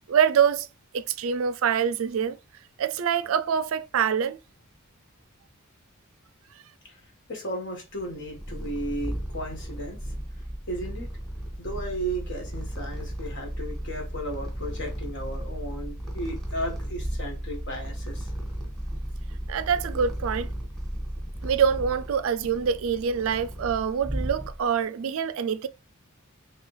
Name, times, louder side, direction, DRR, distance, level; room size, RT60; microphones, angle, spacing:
voice 1, 0.1-0.7 0.9-2.4 2.8-4.4 19.5-20.5 21.4-25.7, right 7 dB, 70° right, 0.4 m, -25 dB
voice 2, 7.3-10.0 10.7-11.1 11.6-18.3, right 1 dB, 60° left, 1.6 m, -34 dB
Purr, 8.0-24.8, right 1 dB, ahead, 1.4 m, -35 dB
3.7 x 3.4 x 3.2 m
head